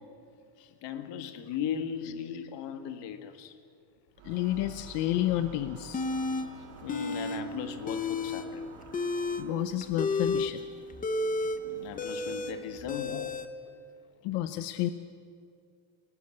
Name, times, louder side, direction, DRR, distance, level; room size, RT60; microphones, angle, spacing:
voice 1, 0.8-3.6 6.8-8.8 11.6-13.3, left 8 dB, 55° left, 8 dB, 1.9 m, -37 dB
voice 2, 4.2-6.0 9.4-10.6 14.2-14.9, left 14 dB, 80° left, 11 dB, 1.0 m, -30 dB
sound 1, 4.2-9.9, right 6 dB, 90° right, 3.0 m, -50 dB
sound 2, 5.9-6.5 6.9-7.4 7.7-8.5 8.8-13.5, left 3 dB, 15° left, 0.9 m, -31 dB
27.0 x 18.5 x 7.8 m, 2.4 s
cardioid pair, 180°, 50 cm